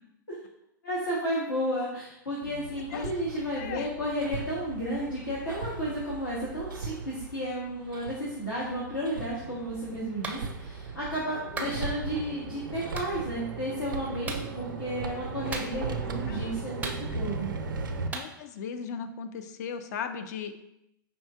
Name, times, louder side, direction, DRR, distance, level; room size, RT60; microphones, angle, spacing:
voice 1, 0.8-17.5, equal, 75° left, -6 dB, 0.9 m, -33 dB
Hammer, 2.4-18.1, right 4 dB, 75° right, 0.4 m, -38 dB
voice 2, 3.6-3.9 11.3-11.7 15.5-15.7 16.0-16.5 18.1-20.5, left 7 dB, 50° left, 8 dB, 0.4 m, -38 dB
Clapping, 10.2-10.4 11.6-11.8 13.0-13.1 14.3-14.5 15.5-16.0 16.8-17.4 18.1-18.3, right 3 dB, 15° right, 0.4 m, -36 dB
5.1 x 2.7 x 2.3 m, 0.84 s
figure-of-eight pair, 100°, 11 cm